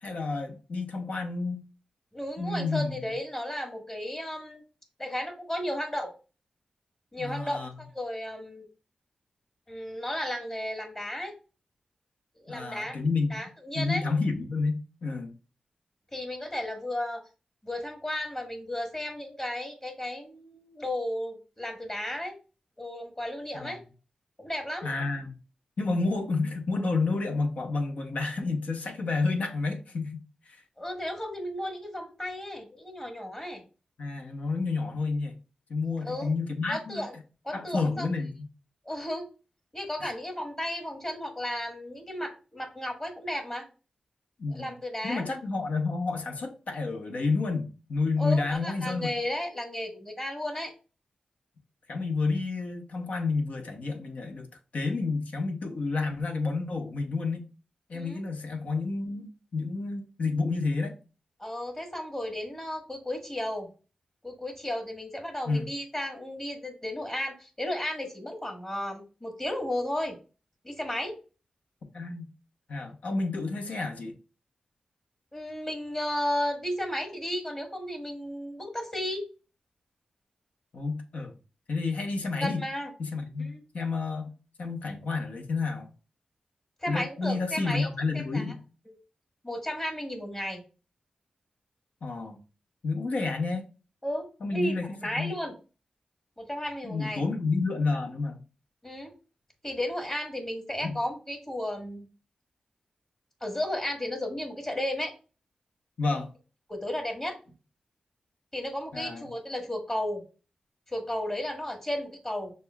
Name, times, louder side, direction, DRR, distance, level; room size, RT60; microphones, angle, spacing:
voice 1, 0.0-1.6 2.4-3.0 7.2-7.7 12.5-13.3 13.7-15.3 23.5-23.8 24.8-25.3 25.8-30.2 30.5-30.6 34.0-35.3 35.7-37.1 37.5-38.3 40.0-40.1 44.4-44.7 45.0-49.1 51.9-54.5 54.7-57.5 57.9-60.9 65.5-65.7 71.9-72.3 72.7-74.1 80.7-81.3 81.7-82.6 83.0-84.3 84.6-85.9 86.9-88.6 92.0-92.4 92.8-93.6 94.4-95.3 96.8-98.4 100.8-101.0 106.0-106.3 108.9-109.2, left 3 dB, 75° left, 0.8 m, -30 dB
voice 2, 2.1-4.6 5.0-6.1 7.1-8.7 9.7-11.3 12.4-13.0 13.3-14.0 16.1-17.2 17.6-22.4 22.8-23.8 24.4-24.9 30.8-33.6 36.0-36.3 36.7-37.1 37.4-38.1 38.8-39.2 39.7-43.6 44.5-45.3 48.2-50.7 57.9-58.2 61.4-63.7 64.2-70.1 70.6-71.1 75.3-79.2 82.4-82.9 83.4-83.6 86.8-87.9 88.1-88.4 88.9-89.0 89.4-90.6 94.0-94.3 94.5-94.7 95.0-95.5 96.4-97.2 98.8-99.1 99.6-102.0 103.4-105.1 106.7-107.4 108.5-110.2 110.9-112.5, left 1 dB, 25° left, 1.4 m, -34 dB
6.4 x 2.2 x 2.3 m
cardioid pair, 45°, 2 cm